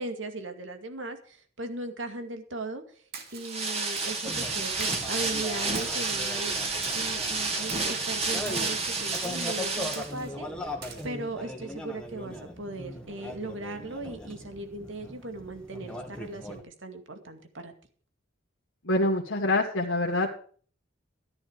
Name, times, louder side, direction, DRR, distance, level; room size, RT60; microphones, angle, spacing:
voice 1, 0.0-2.8 3.3-6.6 6.9-10.5 11.0-17.7, right 2 dB, 90° right, 7 dB, 2.2 m, -38 dB
Splash splatter, 3.1-3.5 4.0-4.3 4.8-5.1 5.8-6.1 6.8-7.2 7.7-8.0 8.5-8.7 9.1-9.5 9.9-10.3 10.8-11.1, right 6 dB, 55° right, 2.6 m, -43 dB
sound 1, 3.4-10.1, right 3 dB, 35° right, 2.9 m, -30 dB
sound 2, 4.2-16.6, left 1 dB, 5° left, 1.9 m, -40 dB
voice 2, 18.8-20.3, left 2 dB, 85° left, 0 dB, 1.9 m, -25 dB
13.5 x 10.5 x 5.1 m, 0.44 s
head